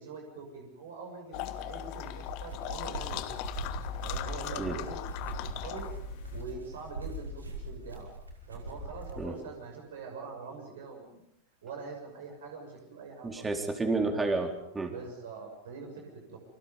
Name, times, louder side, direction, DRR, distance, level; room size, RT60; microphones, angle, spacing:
voice 1, 0.0-3.4 4.0-5.9 6.3-8.1 8.5-11.2 11.6-13.5 14.9-16.4, right 4 dB, 60° right, 2 dB, 6.7 m, -44 dB
sound 1, 1.3-6.4, left 12 dB, 45° left, 1.5 m, -39 dB
sound 2, 2.1-9.2, right 1 dB, 80° right, 5.6 m, -41 dB
voice 2, 13.2-14.9, right 3 dB, 10° right, 4 dB, 4.1 m, -30 dB
29.5 x 25.5 x 5.4 m, 0.79 s
figure-of-eight pair, 90°, 0 cm